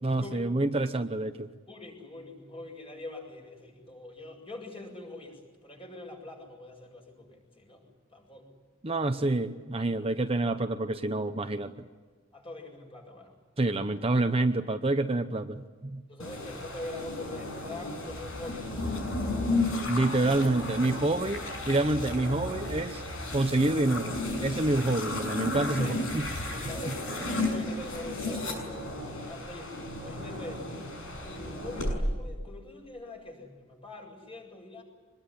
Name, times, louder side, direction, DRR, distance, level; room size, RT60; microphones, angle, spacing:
voice 1, 0.0-1.5 8.8-11.7 13.6-16.0 19.9-23.0 23.3-26.3, right 2 dB, 30° right, 7 dB, 0.9 m, -27 dB
voice 2, 1.7-7.8 8.1-8.5 12.3-13.3 16.1-19.6 25.8-26.0 26.5-29.8 30.0-30.8 31.2-34.8, left 2 dB, 30° left, 2 dB, 7.3 m, -44 dB
sound 1, 16.2-31.9, left 2 dB, 90° left, 6.7 m, -34 dB
25.0 x 21.5 x 10.0 m, 1.4 s
head